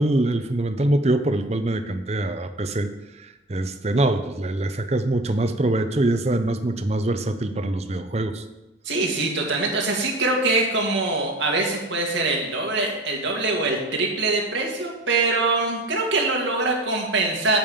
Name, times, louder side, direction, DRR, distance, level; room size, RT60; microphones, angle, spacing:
voice 1, 0.0-2.9 3.5-8.4, right 2 dB, 35° right, 9 dB, 0.6 m, -23 dB
voice 2, 8.8-17.6, right 3 dB, 90° right, 0 dB, 2.2 m, -23 dB
8.8 x 5.5 x 6.8 m, 1.0 s
head